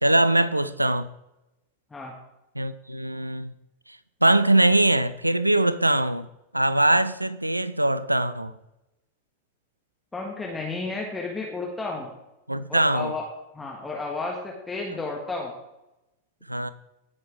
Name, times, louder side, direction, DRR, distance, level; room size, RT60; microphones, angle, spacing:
voice 1, 0.0-1.1 2.6-3.5 4.2-6.3 6.5-8.5 12.5-13.1 16.5-16.7, right 1 dB, 85° right, 0.5 m, -22 dB
voice 2, 10.1-12.1 12.7-13.2 13.5-15.5, left 3 dB, 10° left, 1.7 m, -32 dB
17.0 x 6.5 x 3.6 m
figure-of-eight pair, 90°, 0 cm